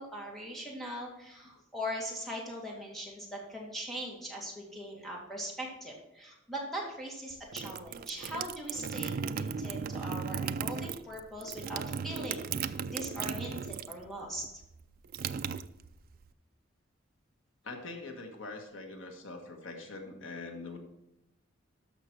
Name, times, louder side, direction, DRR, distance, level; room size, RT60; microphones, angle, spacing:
voice 1, 0.0-14.5, equal, ahead, -3 dB, 2.2 m, -40 dB
sound 1, 7.3-14.1 14.4-16.2, right 6 dB, 45° right, 0.3 m, -36 dB
voice 2, 17.6-20.8, left 3 dB, 70° left, 3 dB, 1.5 m, -43 dB
13.0 x 5.9 x 4.5 m, 0.88 s
head